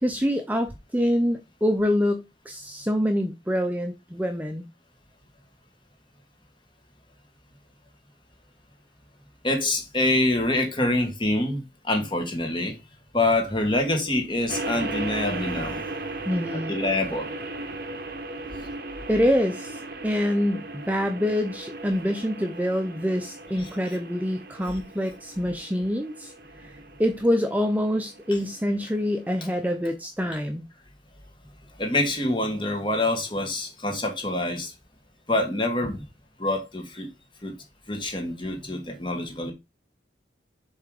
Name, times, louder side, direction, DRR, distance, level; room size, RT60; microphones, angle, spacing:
voice 1, 0.0-4.7 16.3-16.7 19.1-30.7, equal, 10° right, 0.6 m, -26 dB
voice 2, 9.4-12.7 13.1-15.9 16.5-17.3 23.6-23.7 31.8-34.7 35.3-36.0 36.4-37.1 37.4-37.5 37.9-39.5, left 2 dB, 25° left, 1.7 m, -26 dB
sound 1, 14.5-29.8, right 2 dB, 55° right, 1.0 m, -37 dB
7.3 x 3.4 x 4.8 m
head